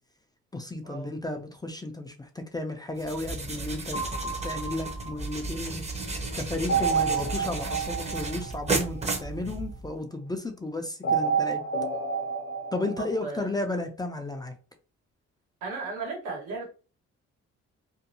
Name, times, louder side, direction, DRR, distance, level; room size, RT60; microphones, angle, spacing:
voice 1, 0.5-4.0 4.2-5.8 6.4-11.6 12.7-14.5, left 2 dB, 15° left, 0.4 m, -33 dB
sound 1, 3.0-10.0, right 3 dB, 20° right, 0.7 m, -33 dB
sound 2, 3.9-5.7 6.7-9.2 11.0-13.2, right 5 dB, 45° left, 0.7 m, -29 dB
voice 2, 15.6-16.6, right 3 dB, 85° right, 1.4 m, -35 dB
2.6 x 2.2 x 2.7 m
cardioid pair, 90°, 30 cm